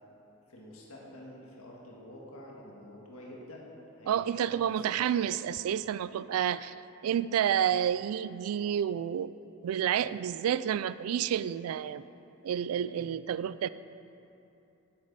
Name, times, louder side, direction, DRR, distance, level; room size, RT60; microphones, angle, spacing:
voice 1, 0.5-3.6 3.9-5.1 5.6-6.0 7.5-7.7 12.8-13.0, left 1 dB, 75° left, -3 dB, 1.7 m, -49 dB
voice 2, 4.1-6.7 7.0-9.3 9.6-12.0 12.4-13.7, right 9 dB, 90° right, 17 dB, 0.3 m, -29 dB
9.7 x 8.7 x 4.1 m, 2.9 s
head